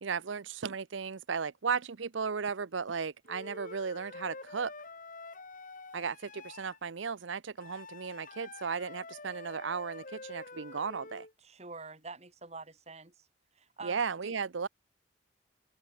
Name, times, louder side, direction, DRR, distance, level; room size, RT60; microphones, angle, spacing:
voice 1, 0.0-4.7 5.9-11.3 13.8-14.7, right 5 dB, 70° right, 0.7 m, -35 dB
Wind instrument woodwind instrument, 3.3-6.8 7.6-11.3, left 3 dB, 40° left, 2.7 m, -47 dB
voice 2, 11.4-13.3 13.5-14.4, right 3 dB, 35° right, 2.4 m, -47 dB
open air
head